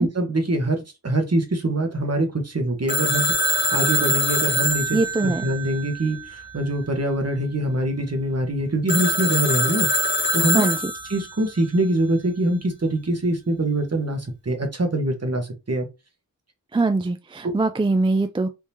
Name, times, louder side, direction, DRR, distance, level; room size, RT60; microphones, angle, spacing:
voice 1, 0.0-10.6 11.1-15.9 17.4-17.5, right 1 dB, 45° right, 1.1 m, -24 dB
Telephone, 2.9-6.5 8.9-11.4, left 1 dB, 30° left, 0.7 m, -24 dB
voice 2, 4.9-5.4 10.5-10.9 16.7-18.5, right 3 dB, 15° right, 0.3 m, -22 dB
3.6 x 2.8 x 2.9 m
wide cardioid pair, 40°, 35 cm